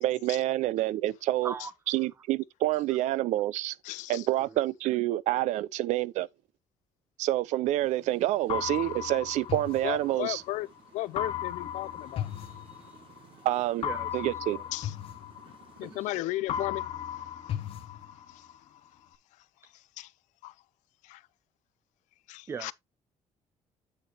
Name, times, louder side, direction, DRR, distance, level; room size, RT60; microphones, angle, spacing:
voice 1, 0.0-1.5 1.9-3.8 4.1-6.3 7.2-10.4 13.4-13.8 14.1-14.6, right 15 dB, 75° right, 0.6 m, -28 dB
voice 2, 1.4-1.7 4.4-4.6 13.8-14.2 14.5-14.6 15.8-16.1 22.5-22.7, right 6 dB, 20° right, 0.4 m, -39 dB
voice 3, 3.8-4.3 9.8-10.7 10.9-12.3 14.7-14.9 15.4-17.6 18.3-18.5 20.0-20.1 20.4-20.5 21.0-21.2 22.3-22.7, left 17 dB, 85° left, 0.5 m, -36 dB
sound 1, 7.8-16.2, right 6 dB, 45° right, 3.5 m, -59 dB
sound 2, 8.5-10.6 11.2-13.2 13.8-16.1 16.5-18.6, left 10 dB, 50° left, 0.8 m, -36 dB
8.2 x 6.6 x 2.9 m
cardioid pair, 165°, 12 cm